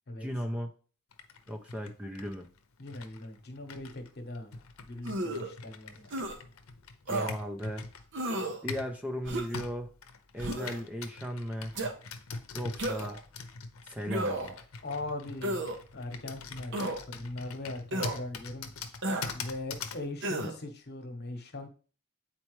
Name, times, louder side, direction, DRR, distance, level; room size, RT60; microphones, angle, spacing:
voice 1, 0.2-0.7 1.5-2.5 7.1-7.8 8.6-9.9 10.3-11.7 12.5-13.2 13.8-14.6, equal, 5° right, 5 dB, 0.5 m, -36 dB
Computer keyboard, 1.1-9.0 9.5-20.1, left 4 dB, 85° left, 0.7 m, -43 dB
voice 2, 2.8-6.4 14.8-15.6 15.9-16.7 17.1-18.7 19.3-21.7, left 2 dB, 50° left, 6 dB, 1.1 m, -40 dB
sound 1, 5.0-5.5 6.1-6.4 7.1-7.3 8.1-8.6 9.3-9.6 10.4-10.8 11.8-11.9 12.8-13.2 14.1-14.6 15.4-15.8 16.7-17.0 17.9-18.2 19.0-19.3 20.2-20.6, right 1 dB, 60° right, 0.9 m, -33 dB
8.5 x 4.3 x 3.1 m, 0.39 s
head